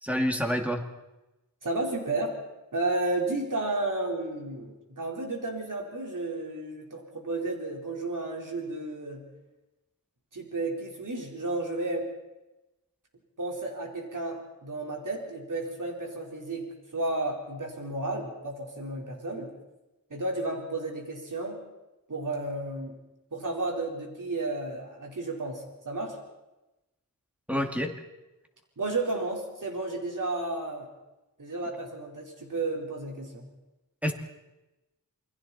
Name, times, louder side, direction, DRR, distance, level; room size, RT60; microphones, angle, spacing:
voice 1, 0.0-0.8 27.5-28.0 34.0-34.1, equal, 5° right, 3 dB, 2.4 m, -27 dB
voice 2, 1.6-2.4 2.7-9.2 10.3-12.1 13.4-19.5 20.1-21.6 22.1-22.9 23.3-26.2 28.8-30.9 31.4-33.5, right 2 dB, 60° right, 0 dB, 4.6 m, -32 dB
28.5 x 21.5 x 4.4 m, 1.0 s
wide cardioid pair, 90°, 35 cm